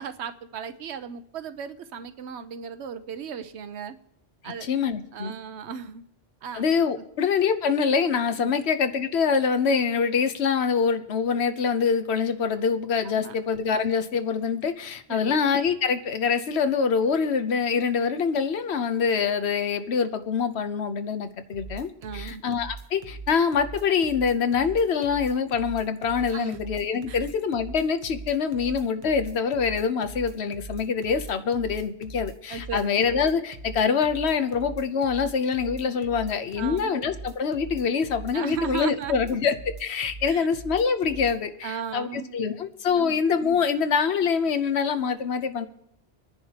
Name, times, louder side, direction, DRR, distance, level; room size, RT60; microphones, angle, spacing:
voice 1, 0.0-4.0 4.4-4.7 5.1-6.0 6.4-6.6 8.4-8.6 13.1-13.3 15.1-15.4 22.0-22.4 26.3-26.6 27.1-27.2 32.5-32.9 36.6-37.0 38.3-39.4 40.3-40.5 41.6-42.3 43.0-43.2, right 7 dB, 85° right, 11 dB, 1.0 m, -36 dB
voice 2, 4.4-5.3 6.5-45.7, left 6 dB, 80° left, 9 dB, 1.1 m, -25 dB
sound 1, 21.5-41.4, right 3 dB, 50° right, 1.0 m, -40 dB
25.5 x 10.0 x 2.9 m, 0.78 s
omnidirectional pair, 1.1 m